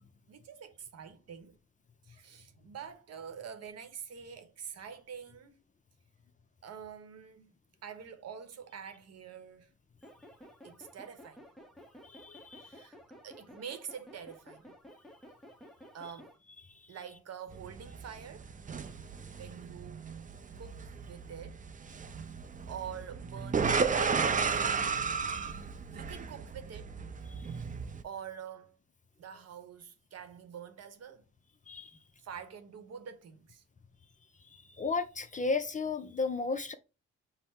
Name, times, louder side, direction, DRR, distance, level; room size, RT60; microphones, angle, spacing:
voice 1, 0.3-1.6 2.0-5.6 6.6-7.5 7.8-9.7 10.6-11.4 12.6-13.0 13.2-14.7 15.9-16.4 16.9-18.5 19.3-20.0 20.6-21.6 22.7-25.0 25.9-26.9 28.0-28.8 29.2-31.3 32.2-33.6, right 7 dB, 55° right, 0.9 m, -46 dB
sound 1, 10.0-16.4, equal, ahead, 0.8 m, -54 dB
voice 2, 12.0-12.9 16.7-16.9 25.3-25.6 27.4-27.5 31.7-31.9 34.4-36.7, left 4 dB, 25° left, 0.5 m, -35 dB
sound 2, 17.5-28.0, right 5 dB, 25° right, 0.5 m, -34 dB
5.4 x 2.1 x 4.3 m
cardioid pair, 90°, 30 cm